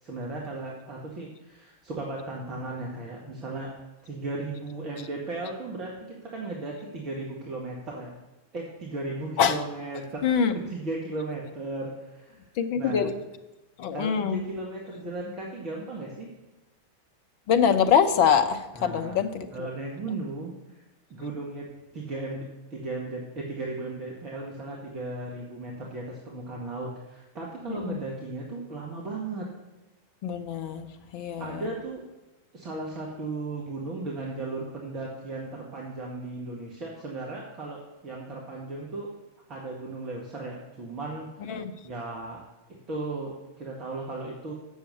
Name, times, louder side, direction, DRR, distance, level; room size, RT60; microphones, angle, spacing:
voice 1, 0.0-3.7 4.0-8.1 8.5-10.2 10.7-12.4 12.8-13.1 13.9-16.3 18.7-19.2 19.5-20.8 21.1-21.7 21.9-29.5 31.4-32.0 32.5-39.1 39.5-41.6 41.8-42.4 42.7-44.5, right 2 dB, 30° right, -2 dB, 1.8 m, -36 dB
voice 2, 10.2-10.6 12.5-13.2 13.8-14.4 17.5-19.7 27.7-28.0 30.2-31.7 41.4-41.7, left 7 dB, 45° left, 8 dB, 0.8 m, -24 dB
7.3 x 6.9 x 8.1 m, 1.1 s
figure-of-eight pair, 90°, 0 cm